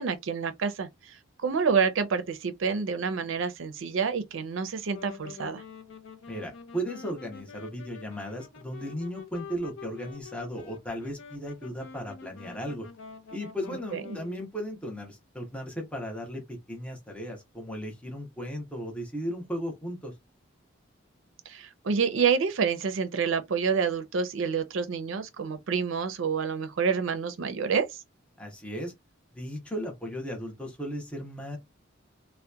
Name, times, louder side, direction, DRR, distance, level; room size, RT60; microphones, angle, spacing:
voice 1, 0.0-5.6 13.9-14.2 21.5-28.0, right 6 dB, 75° right, 0.5 m, -28 dB
Wind instrument woodwind instrument, 4.8-14.5, left 6 dB, 70° left, 0.5 m, -46 dB
voice 2, 6.3-12.9 13.3-20.1 28.4-28.9 29.3-31.6, equal, 5° left, 0.6 m, -36 dB
2.7 x 2.1 x 2.2 m
head